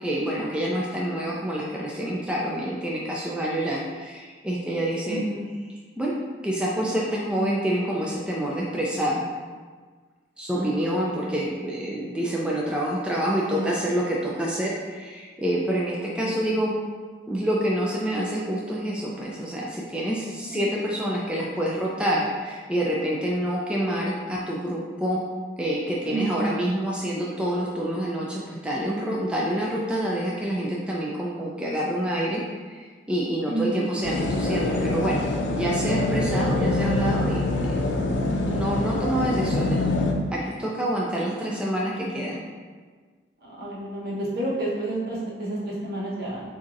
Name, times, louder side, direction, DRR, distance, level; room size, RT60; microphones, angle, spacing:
voice 1, 0.0-5.2 6.0-6.2 6.4-9.2 10.4-16.8 17.3-25.2 25.6-35.2 35.5-38.1 38.4-39.9 40.3-42.4, right 1 dB, 5° right, -4 dB, 0.4 m, -27 dB
voice 2, 5.1-5.4 10.5-11.4 13.5-14.0 15.9-16.5 20.4-20.6 26.0-26.5 33.4-33.9 39.0-39.4 43.5-46.4, right 1 dB, 60° right, -6 dB, 1.2 m, -31 dB
sound 1, 34.0-40.1, left 2 dB, 85° left, 0.5 m, -25 dB
6.7 x 2.7 x 2.5 m, 1.5 s
head